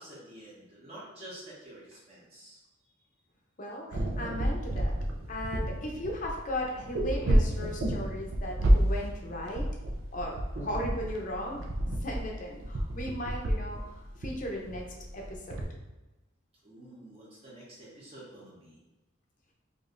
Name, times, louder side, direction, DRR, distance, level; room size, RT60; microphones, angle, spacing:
voice 1, 0.0-2.6 16.6-18.8, right 1 dB, 30° right, -7 dB, 1.0 m, -49 dB
voice 2, 3.6-4.9 5.3-9.7 10.1-11.6 12.0-13.9 14.2-14.8 15.1-15.7, left 1 dB, 40° left, 0 dB, 0.7 m, -36 dB
sound 1, 3.9-15.6, right 1 dB, 85° right, 0.6 m, -30 dB
5.0 x 2.7 x 2.5 m, 1.1 s
head